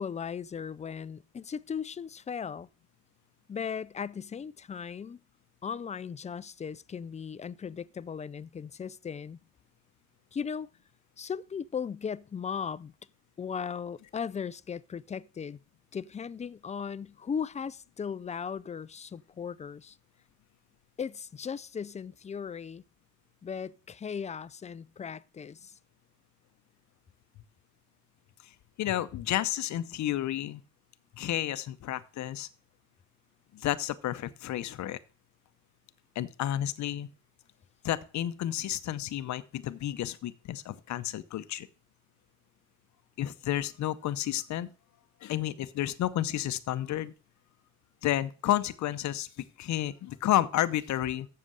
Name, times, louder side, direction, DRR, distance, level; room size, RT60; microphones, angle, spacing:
voice 1, 0.0-2.7 3.5-5.2 5.6-9.4 10.3-10.7 11.2-12.9 13.4-15.6 15.9-20.0 21.0-22.8 23.4-25.7, left 7 dB, 25° left, 0.4 m, -37 dB
voice 2, 28.8-30.6 31.2-32.5 33.5-35.0 36.2-37.1 37.8-41.7 43.2-44.7 45.2-47.1 48.0-49.3 49.6-51.3, left 13 dB, 70° left, 0.7 m, -31 dB
7.5 x 6.7 x 6.3 m
cardioid pair, 90°, 30 cm